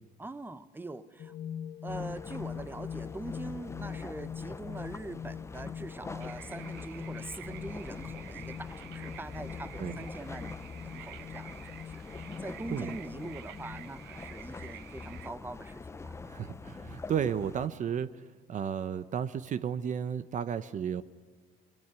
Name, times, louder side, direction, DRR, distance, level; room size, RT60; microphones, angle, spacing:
voice 1, 0.2-1.3 1.8-16.2, right 2 dB, 10° right, 13 dB, 1.2 m, -43 dB
sound 1, 1.2-14.0, left 8 dB, 55° left, 1.0 m, -43 dB
sound 2, 1.9-17.7, left 4 dB, 15° left, 0.7 m, -45 dB
sound 3, 6.2-15.3, right 14 dB, 80° right, 0.9 m, -50 dB
voice 2, 16.3-18.1 18.5-21.0, right 8 dB, 45° right, 13 dB, 0.9 m, -33 dB
24.5 x 22.0 x 9.7 m, 1.4 s
cardioid pair, 110°, 17 cm